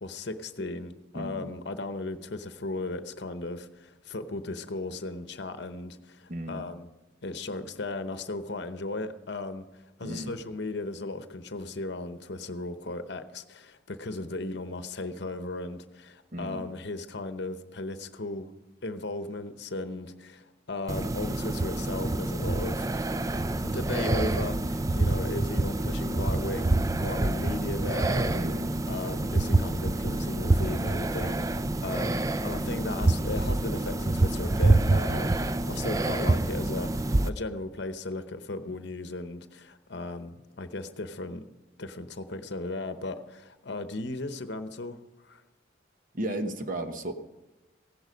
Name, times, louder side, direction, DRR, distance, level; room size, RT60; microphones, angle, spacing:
voice 1, 0.0-6.9 7.2-9.7 10.0-18.5 18.8-22.9 23.6-28.4 28.9-41.5 41.8-45.0 45.2-45.4, left 2 dB, 55° left, 10 dB, 0.9 m, -36 dB
voice 2, 1.1-1.5 6.3-6.7 10.0-10.4 16.3-16.7 28.3-28.8 46.1-47.1, right 1 dB, 40° right, 7 dB, 1.0 m, -34 dB
sound 1, 20.9-37.3, right 2 dB, 15° right, 0.3 m, -27 dB
16.0 x 11.0 x 5.2 m, 1.1 s
head